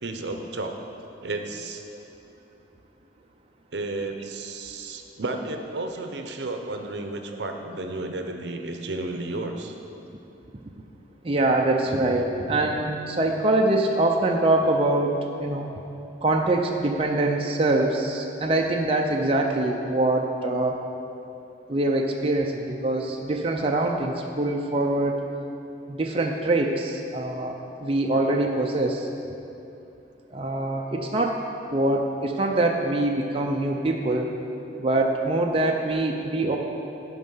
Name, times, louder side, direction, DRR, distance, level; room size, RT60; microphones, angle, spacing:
voice 1, 0.0-1.8 3.7-9.8, right 2 dB, 65° right, 5 dB, 0.7 m, -32 dB
voice 2, 11.2-15.7 16.2-20.8 21.7-25.1 25.9-29.1 30.3-31.3 31.7-34.3 34.8-36.6, right 2 dB, 30° right, 0 dB, 0.5 m, -24 dB
11.0 x 5.3 x 5.6 m, 2.8 s
head